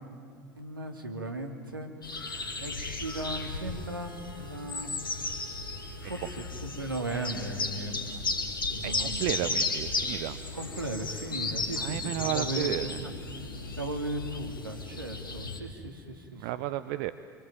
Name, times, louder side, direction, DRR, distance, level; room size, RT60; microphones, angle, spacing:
voice 1, 0.5-1.9 2.5-4.9 6.0-6.2 6.6-8.2 8.7-9.6 10.5-13.1 13.8-16.5, right 1 dB, 90° right, 5 dB, 2.7 m, -37 dB
sound 1, 2.0-15.6, left 3 dB, 85° left, 2.4 m, -35 dB
Wind instrument woodwind instrument, 3.1-7.2, right 5 dB, 40° right, 6.8 m, -54 dB
voice 2, 8.8-10.4 11.8-13.0 16.4-17.1, right 15 dB, 60° right, 12 dB, 0.9 m, -33 dB
27.0 x 24.0 x 9.0 m, 2.1 s
figure-of-eight pair, 75°, 11 cm